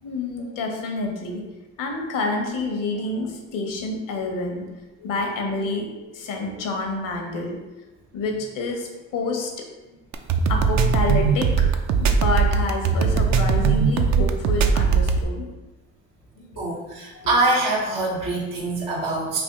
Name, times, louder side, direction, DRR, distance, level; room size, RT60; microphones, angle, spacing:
voice 1, 0.0-1.4 1.8-4.7 5.0-7.6 8.1-9.5 9.9-10.0 10.5-11.7 12.0-15.5 16.4-16.6 17.2-17.3, left 3 dB, 75° left, 2 dB, 0.8 m, -28 dB
sound 1, 10.1-15.2, right 6 dB, 55° right, 0.4 m, -19 dB
voice 2, 16.6-19.4, right 2 dB, 85° right, -3 dB, 1.0 m, -24 dB
3.5 x 2.5 x 3.5 m, 1.1 s
supercardioid pair, 60°, 32 cm